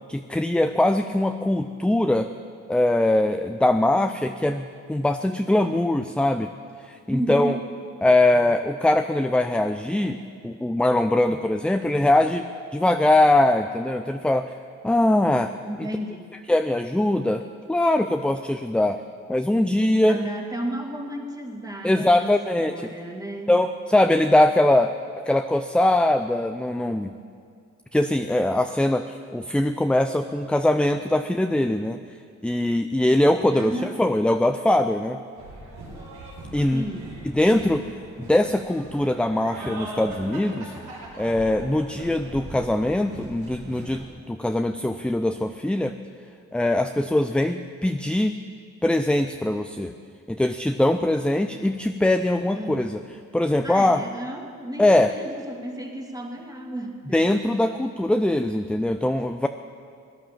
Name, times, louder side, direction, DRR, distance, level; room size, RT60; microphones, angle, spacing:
voice 1, 0.1-2.3 2.7-6.5 6.9-7.5 8.0-12.4 12.7-14.5 14.8-15.5 15.8-15.9 16.5-17.4 17.7-19.0 19.3-20.2 21.8-22.7 23.5-24.9 25.3-27.1 27.9-32.0 32.4-35.2 36.5-36.8 37.3-37.8 38.2-40.7 41.2-45.9 46.5-48.4 48.8-49.9 50.3-53.0 53.3-54.0 54.8-55.1 57.1-59.5, left 1 dB, 5° left, 8 dB, 0.4 m, -22 dB
voice 2, 7.1-7.6 15.7-16.4 20.1-23.7 33.5-34.0 36.7-37.2 52.5-52.9 53.6-57.2, right 1 dB, 10° right, 2 dB, 2.2 m, -33 dB
sound 1, 35.4-44.0, right 2 dB, 85° right, 4.7 m, -40 dB
17.0 x 10.0 x 7.4 m, 2.3 s
cardioid pair, 90°, 30 cm